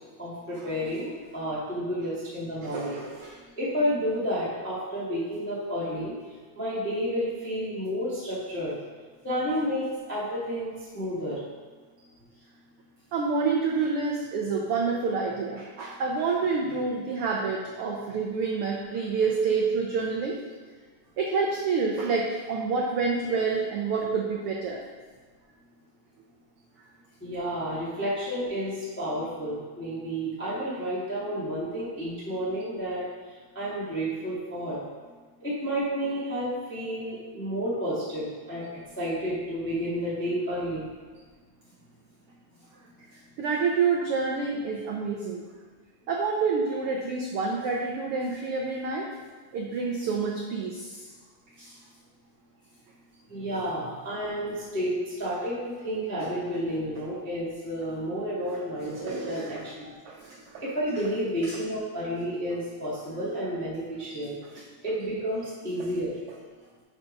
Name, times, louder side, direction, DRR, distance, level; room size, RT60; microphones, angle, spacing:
voice 1, 0.2-3.0 3.6-6.1 6.5-8.7 9.2-11.4 27.2-33.0 33.5-34.8 35.4-38.6 39.0-40.8 53.3-59.7 60.6-64.3 64.8-66.1, equal, 5° left, -9 dB, 1.3 m, -31 dB
voice 2, 2.6-3.4 13.1-20.4 21.2-24.8 43.4-45.4 46.1-49.1 49.5-51.0 51.6-51.7 58.8-60.6 61.5-61.6, right 4 dB, 85° right, -1 dB, 1.2 m, -28 dB
6.4 x 5.5 x 5.3 m, 1.4 s
omnidirectional pair, 3.5 m